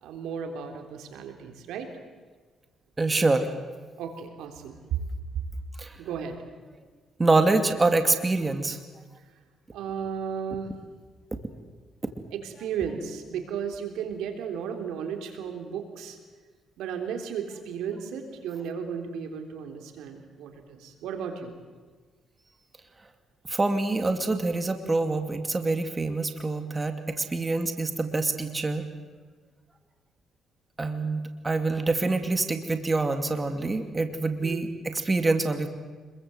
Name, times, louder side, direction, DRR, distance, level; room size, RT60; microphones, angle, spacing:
voice 1, 0.0-1.9 4.0-4.8 6.0-6.4 9.7-10.7 12.3-16.2 16.8-21.5 34.4-34.6, right 7 dB, 90° right, 5 dB, 3.5 m, -34 dB
voice 2, 3.0-3.5 5.8-6.0 7.2-8.8 12.6-12.7 23.5-28.8 30.8-35.7, right 3 dB, 25° right, 7 dB, 2.5 m, -26 dB
26.0 x 22.5 x 8.0 m, 1.4 s
cardioid pair, 90°, 0 cm